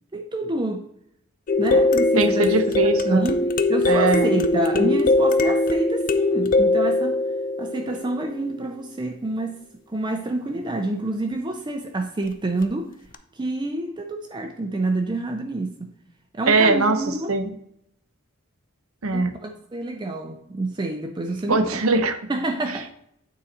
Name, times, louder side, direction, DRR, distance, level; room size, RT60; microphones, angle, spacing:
voice 1, 0.1-0.9 1.6-2.5 2.8-7.2 7.6-9.6 9.9-12.9 13.3-15.9 16.3-17.3 19.1-21.8 22.3-22.9, right 2 dB, 20° right, 0.5 m, -28 dB
sound 1, 1.5-8.4 12.6-12.7 13.1-13.2, left 2 dB, 40° left, 0.5 m, -21 dB
voice 2, 2.2-3.3 3.8-4.4 4.7-4.9 16.5-17.0 17.3-17.5 19.0-19.3 21.5-22.2, right 3 dB, 80° right, 0.8 m, -21 dB
8.9 x 3.9 x 4.1 m
head